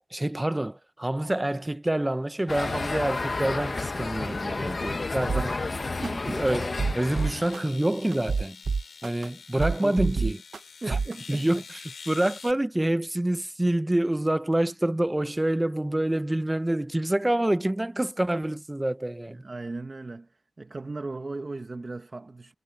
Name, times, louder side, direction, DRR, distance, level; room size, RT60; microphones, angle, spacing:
voice 1, 0.0-5.5 6.3-8.6 9.0-10.4 10.9-11.0 11.3-19.4, right 1 dB, 15° right, 0.8 m, -27 dB
sound 1, 2.5-7.6, left 3 dB, 40° left, 1.1 m, -31 dB
sound 2, 5.3-5.5 6.0-6.1 6.6-7.6 8.1-9.3 9.6-10.6 10.9-11.1, right 4 dB, 65° right, 0.9 m, -27 dB
voice 2, 6.0-6.4 9.7-10.3 10.8-11.6 19.3-20.3 20.6-22.5, right 3 dB, 35° right, 1.3 m, -37 dB
sound 3, 7.0-12.5, left 5 dB, 90° left, 2.8 m, -46 dB
wide cardioid pair, 130°, 0 cm